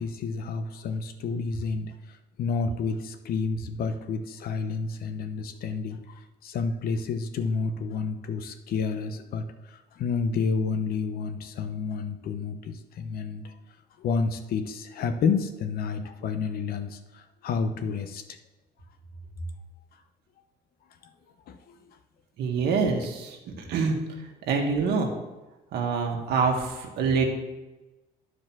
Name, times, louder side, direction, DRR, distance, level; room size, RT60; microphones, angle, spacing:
voice 1, 0.0-1.9 2.4-13.5 14.0-18.2 21.5-21.8, left 5 dB, 65° left, 8 dB, 0.9 m, -30 dB
voice 2, 22.4-23.4 23.7-24.0 24.5-25.1 25.7-27.2, right 5 dB, 75° right, 2 dB, 1.8 m, -25 dB
10.0 x 5.0 x 6.1 m, 1.1 s
cardioid pair, 110°, 17 cm